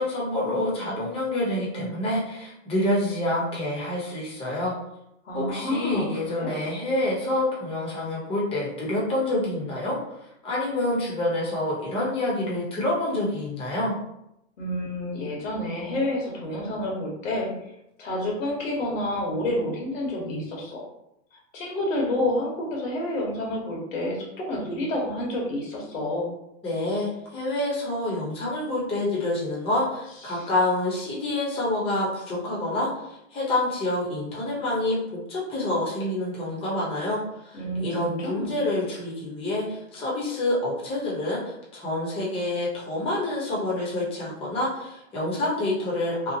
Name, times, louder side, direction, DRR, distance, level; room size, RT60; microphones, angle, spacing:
voice 1, 0.0-4.7 5.3-10.0 10.4-13.9 26.6-46.3, left 1 dB, 15° left, -5 dB, 0.8 m, -27 dB
voice 2, 5.2-6.5 14.6-17.5 18.0-20.8 21.5-26.3 30.3-30.5 37.5-38.5, left 1 dB, 85° left, -1 dB, 1.1 m, -29 dB
2.8 x 2.1 x 2.7 m, 0.82 s
hypercardioid pair, 130°, 38 cm